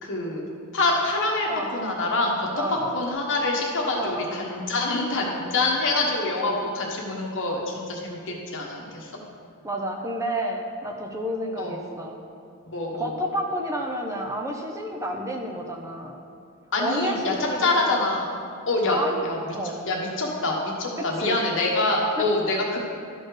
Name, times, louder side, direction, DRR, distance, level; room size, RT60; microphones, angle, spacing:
voice 1, 0.0-0.4 0.7-2.3 2.9-9.1 11.6-11.7 12.7-13.1 16.7-17.3 17.6-18.3 18.7-19.0 19.2-19.5 19.9-22.8, left 2 dB, 60° left, -1 dB, 1.3 m, -25 dB
voice 2, 1.4-1.8 2.5-3.0 3.9-4.3 9.6-12.2 12.9-16.2 16.8-18.1 18.9-19.2 19.5-19.8 21.0-21.4 22.2-22.3, right 1 dB, 15° right, 1 dB, 0.6 m, -30 dB
12.5 x 4.3 x 4.9 m, 2.4 s
head